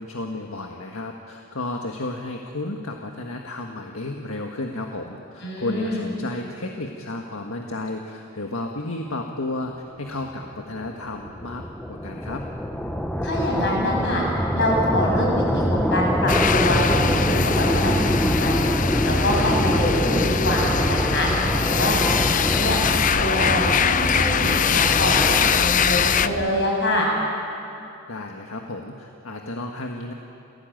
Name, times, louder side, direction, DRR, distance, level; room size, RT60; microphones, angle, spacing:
voice 1, 0.0-11.6 11.9-12.5 28.1-30.1, left 2 dB, 75° left, 2 dB, 1.6 m, -32 dB
voice 2, 5.4-6.1 13.2-14.2 14.5-18.7 19.0-21.3 21.7-22.8 23.1-27.1, left 1 dB, 55° left, -2 dB, 7.7 m, -25 dB
sound 1, 10.5-26.8, equal, 5° left, 1.1 m, -25 dB
sound 2, 16.3-26.3, left 7 dB, 35° left, 0.6 m, -23 dB
29.0 x 17.0 x 9.3 m, 2.8 s
head